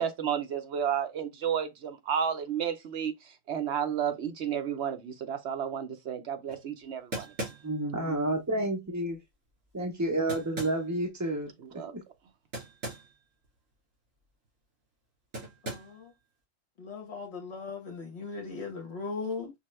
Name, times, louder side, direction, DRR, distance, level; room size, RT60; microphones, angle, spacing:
voice 1, 0.0-3.1 3.5-7.3 11.7-11.9, right 8 dB, 60° right, 0.9 m, -31 dB
sound 1, 6.5-6.6 7.1-7.9 10.3-10.9 12.5-13.1 13.4-13.5 15.3-16.0, right 1 dB, 80° right, 2.8 m, -38 dB
voice 2, 7.6-9.2 9.7-11.5 11.9-12.0, right 1 dB, 30° right, 0.3 m, -30 dB
voice 3, 15.6-16.1 16.8-19.5, left 4 dB, 60° left, 1.0 m, -38 dB
5.4 x 2.2 x 3.1 m
omnidirectional pair, 1.3 m